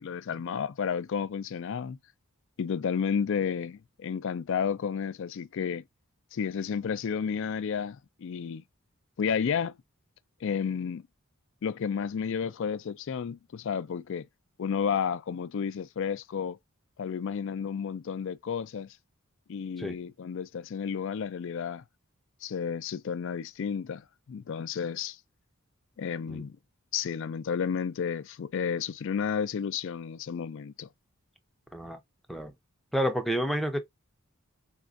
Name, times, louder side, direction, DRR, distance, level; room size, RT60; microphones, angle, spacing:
voice 1, 0.0-2.0 2.6-5.8 6.3-8.6 9.2-9.7 10.4-11.0 11.6-14.3 14.6-16.6 17.0-18.9 19.5-21.8 22.4-25.2 26.0-26.6 26.9-30.9, left 7 dB, 60° left, 0.4 m, -32 dB
voice 2, 32.9-33.8, equal, ahead, 0.5 m, -29 dB
4.2 x 2.4 x 2.4 m
head